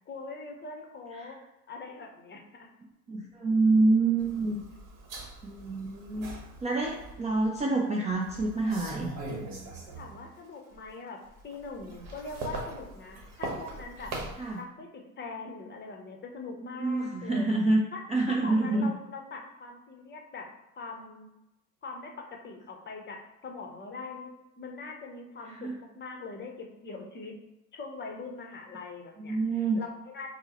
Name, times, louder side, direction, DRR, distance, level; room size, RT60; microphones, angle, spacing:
voice 1, 0.1-1.4 1.7-2.7 9.9-14.1 14.6-17.5 17.9-20.5 20.8-21.3 21.8-24.3 24.6-27.3 27.7-29.4 29.7-30.3, left 3 dB, 25° left, 2 dB, 0.7 m, -42 dB
voice 2, 3.1-4.6 5.4-6.4 6.6-9.1 14.4-14.6 16.8-17.8 18.1-18.9 25.5-25.7 29.2-29.8, right 3 dB, 15° right, -1 dB, 0.4 m, -27 dB
sound 1, 4.2-7.6 8.1-10.4 10.7-14.6, right 2 dB, 50° right, 1.1 m, -41 dB
4.4 x 2.1 x 2.9 m, 0.92 s
hypercardioid pair, 80°, 43 cm